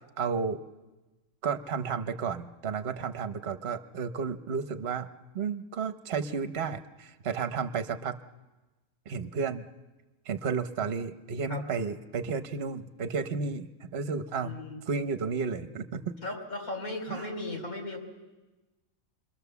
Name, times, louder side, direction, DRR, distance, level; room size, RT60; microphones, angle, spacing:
voice 1, 0.2-0.6 1.4-5.1 5.3-8.2 9.1-9.7 10.3-14.5 14.9-16.1 17.1-17.3, right 5 dB, 50° right, 9 dB, 1.2 m, -32 dB
voice 2, 14.4-14.8 16.2-18.0, left 2 dB, 75° left, 3 dB, 4.5 m, -36 dB
29.0 x 22.5 x 7.0 m, 1.2 s
omnidirectional pair, 1.5 m